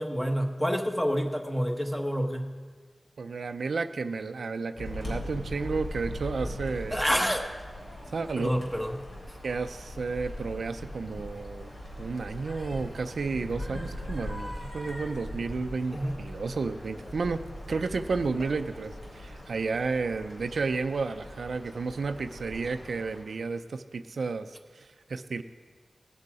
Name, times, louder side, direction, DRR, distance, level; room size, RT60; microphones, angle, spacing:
voice 1, 0.0-2.5 6.9-7.5 8.4-9.0 15.9-16.2, equal, 10° left, 3 dB, 1.1 m, -28 dB
voice 2, 3.2-7.1 8.1-8.6 9.4-11.7 12.0-25.4, right 4 dB, 85° right, 9 dB, 0.4 m, -32 dB
sound 1, 4.8-23.2, left 1 dB, 65° left, 4.0 m, -40 dB
18.5 x 6.8 x 4.9 m, 1.5 s
wide cardioid pair, 105°, 0 cm